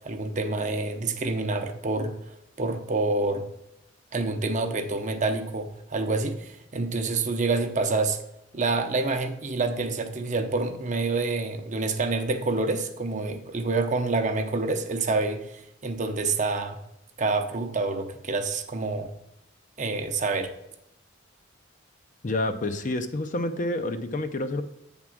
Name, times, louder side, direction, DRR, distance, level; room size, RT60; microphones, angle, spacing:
voice 1, 0.0-3.5 4.1-8.2 8.5-16.8 17.2-19.1 19.8-20.5, right 3 dB, 35° right, 6 dB, 0.7 m, -27 dB
voice 2, 22.2-24.6, left 2 dB, 40° left, 8 dB, 0.5 m, -28 dB
8.6 x 3.7 x 6.0 m, 0.84 s
head